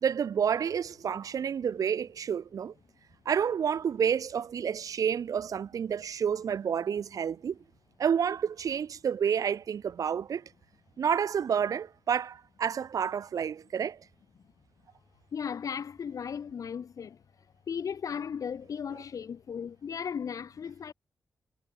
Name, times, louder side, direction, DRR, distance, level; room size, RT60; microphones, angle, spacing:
voice 1, 0.0-2.7 3.3-7.6 8.0-10.4 11.0-14.0, right 7 dB, 65° right, 0.5 m, -29 dB
voice 2, 15.3-17.2 17.7-20.9, left 7 dB, 65° left, 0.7 m, -36 dB
cardioid pair, 80°, 6 cm